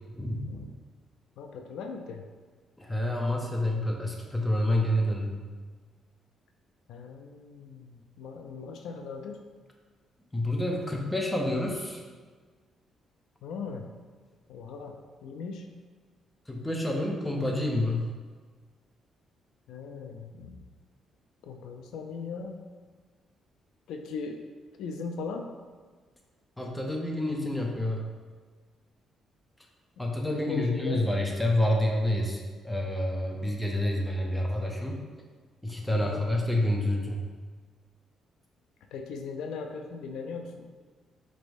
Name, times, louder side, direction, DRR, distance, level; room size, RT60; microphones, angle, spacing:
voice 1, 0.1-0.6 2.8-5.4 10.3-12.0 16.5-18.0 26.6-28.1 30.0-32.4 32.6-35.0 35.6-37.2, left 1 dB, 5° left, 0 dB, 0.6 m, -28 dB
voice 2, 1.4-2.2 6.9-9.4 13.4-13.9 14.5-15.0 15.2-15.7 19.7-20.6 21.4-22.6 23.9-24.4 24.8-25.5 30.3-31.1 33.3-33.5 36.0-36.3 38.9-40.7, left 5 dB, 85° left, 4 dB, 0.3 m, -39 dB
4.3 x 3.2 x 2.6 m, 1.5 s
cardioid pair, 90°, 0 cm